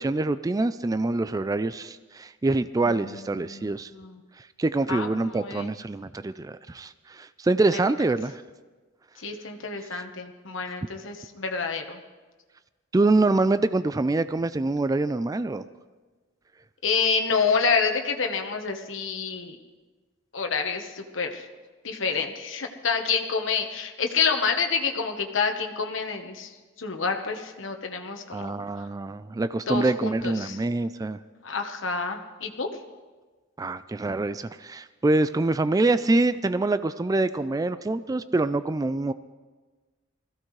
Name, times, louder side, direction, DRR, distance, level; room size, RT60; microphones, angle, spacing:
voice 1, 0.0-3.9 4.4-8.4 9.9-10.0 12.9-15.6 28.3-31.2 33.6-39.1, right 2 dB, 20° right, 13 dB, 0.3 m, -25 dB
voice 2, 2.8-3.2 3.5-4.2 4.9-5.8 7.7-7.8 9.2-12.0 16.8-19.6 20.3-21.5 21.8-26.5 26.8-28.9 29.7-30.6 31.4-32.7, left 5 dB, 75° left, 4 dB, 1.2 m, -28 dB
20.5 x 15.5 x 3.2 m, 1.3 s
head